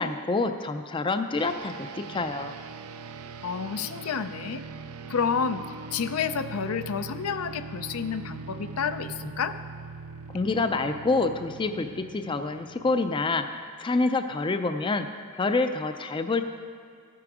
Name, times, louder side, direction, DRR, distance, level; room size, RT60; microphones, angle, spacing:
voice 1, 0.0-2.5 10.3-13.4 13.8-15.1 15.3-16.4, left 3 dB, 20° left, 8 dB, 0.4 m, -27 dB
sound 1, 1.4-13.6, right 4 dB, 90° right, 0.5 m, -41 dB
voice 2, 3.4-4.6 5.1-5.6 5.9-9.6, left 6 dB, 75° left, 10 dB, 0.5 m, -29 dB
13.0 x 8.6 x 4.8 m, 2.3 s
head